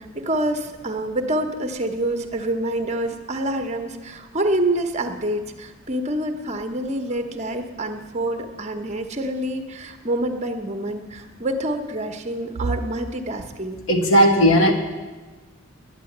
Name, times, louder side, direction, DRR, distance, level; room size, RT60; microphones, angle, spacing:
voice 1, 0.0-13.8, right 1 dB, 30° right, 6 dB, 1.0 m, -27 dB
voice 2, 13.9-14.7, equal, 70° left, 1 dB, 1.9 m, -15 dB
11.0 x 10.0 x 7.9 m, 1.3 s
head